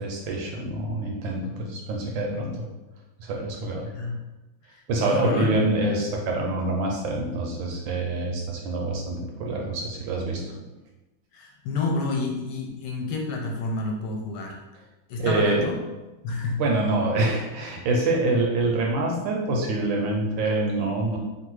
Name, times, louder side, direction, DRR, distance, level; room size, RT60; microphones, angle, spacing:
voice 1, 0.0-2.6 3.2-3.9 4.9-10.4 15.2-15.6 16.6-21.2, right 2 dB, 75° right, 0 dB, 1.3 m, -26 dB
voice 2, 5.0-5.5 11.3-14.6 15.1-15.8 16.2-16.6, left 3 dB, 75° left, 1 dB, 1.3 m, -29 dB
3.3 x 2.6 x 4.5 m, 1.1 s
omnidirectional pair, 2.4 m